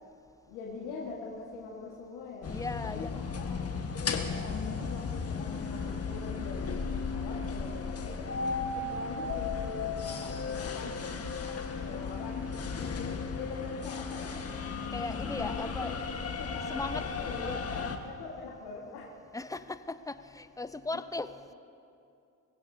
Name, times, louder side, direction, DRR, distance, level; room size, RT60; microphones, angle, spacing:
voice 1, 0.5-2.6 2.8-3.7 4.0-8.4 8.7-12.5 13.3-14.4 15.3-16.0 16.4-17.5 17.8-19.1 20.9-21.0, left 4 dB, 75° left, -2 dB, 1.6 m, -43 dB
sound 1, 2.4-18.0, left 5 dB, 35° left, 1.4 m, -35 dB
voice 2, 2.5-3.6 14.9-15.9 16.7-17.0 17.4-18.0 19.3-21.3, left 2 dB, 10° left, 12 dB, 0.6 m, -38 dB
22.5 x 16.0 x 2.7 m, 2.5 s
hypercardioid pair, 55°, 39 cm